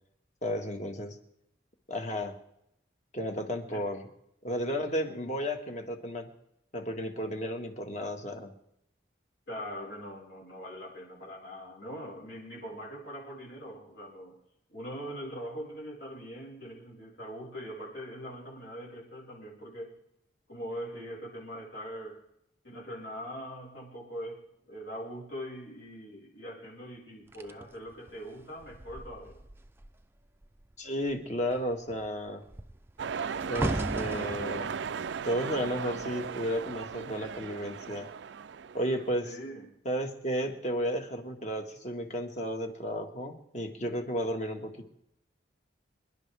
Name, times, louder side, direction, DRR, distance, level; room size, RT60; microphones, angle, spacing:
voice 1, 0.4-1.2 1.9-2.4 3.1-4.0 4.4-6.3 6.7-8.5 30.8-32.4 33.5-34.7 35.2-38.1 38.7-39.3 39.8-44.9, equal, 40° left, 4 dB, 1.6 m, -33 dB
voice 2, 9.5-14.4 14.7-19.9 20.5-22.2 22.6-29.4 39.2-39.7, equal, 75° left, -5 dB, 5.0 m, -42 dB
sound 1, 27.3-30.0 30.3-30.7 31.0-36.4 37.1-37.4, right 1 dB, 10° right, 0.5 m, -38 dB
sound 2, 33.0-39.1, right 6 dB, 70° right, 0.4 m, -36 dB
26.0 x 11.0 x 3.4 m, 0.80 s
head